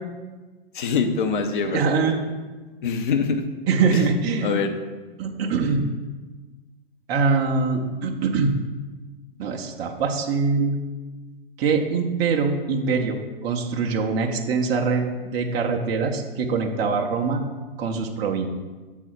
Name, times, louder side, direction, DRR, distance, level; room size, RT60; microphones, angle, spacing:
voice 1, 0.7-2.1 2.8-3.4 3.9-4.1 4.4-4.7, left 5 dB, 55° left, 7 dB, 0.7 m, -24 dB
voice 2, 1.7-2.2 3.7-4.6 5.2-5.8 7.1-8.5 9.4-10.8 11.6-17.4 17.8-18.5, right 4 dB, 15° right, 2 dB, 0.3 m, -23 dB
6.3 x 4.0 x 5.8 m, 1.3 s
figure-of-eight pair, 110°, 30 cm